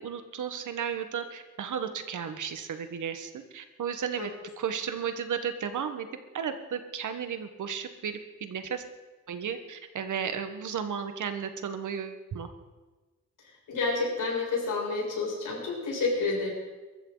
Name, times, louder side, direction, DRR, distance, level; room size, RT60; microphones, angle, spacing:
voice 1, 0.0-4.3 4.6-6.1 6.3-8.8 9.3-12.5, right 7 dB, 75° right, 8 dB, 1.4 m, -34 dB
voice 2, 13.7-16.5, left 3 dB, 85° left, -3 dB, 6.7 m, -29 dB
23.0 x 13.5 x 4.0 m, 1.2 s
wide cardioid pair, 165°, 31 cm